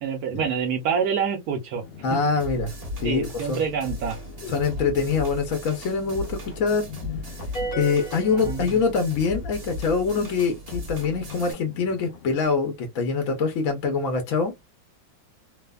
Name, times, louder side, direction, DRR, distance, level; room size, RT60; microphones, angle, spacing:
voice 1, 0.0-1.8 3.0-4.2 8.3-8.8, right 6 dB, 70° right, 0.9 m, -27 dB
sound 1, 1.8-12.4, left 6 dB, 85° left, 1.3 m, -44 dB
voice 2, 2.0-2.7 3.0-3.6 4.5-6.9 7.8-14.5, left 5 dB, 65° left, 0.9 m, -24 dB
sound 2, 2.4-11.5, left 1 dB, 30° right, 0.7 m, -37 dB
sound 3, 7.5-9.3, right 2 dB, 35° left, 0.7 m, -34 dB
3.2 x 2.0 x 2.2 m
omnidirectional pair, 2.0 m